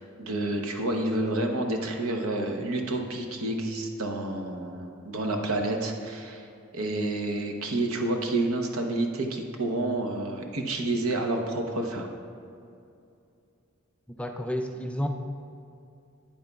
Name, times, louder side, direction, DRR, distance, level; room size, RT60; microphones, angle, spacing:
voice 1, 0.0-6.5 6.7-12.1, right 2 dB, 80° right, 3 dB, 0.8 m, -29 dB
voice 2, 14.2-15.1, equal, 5° left, 4 dB, 0.3 m, -30 dB
9.4 x 8.9 x 2.3 m, 2.5 s
head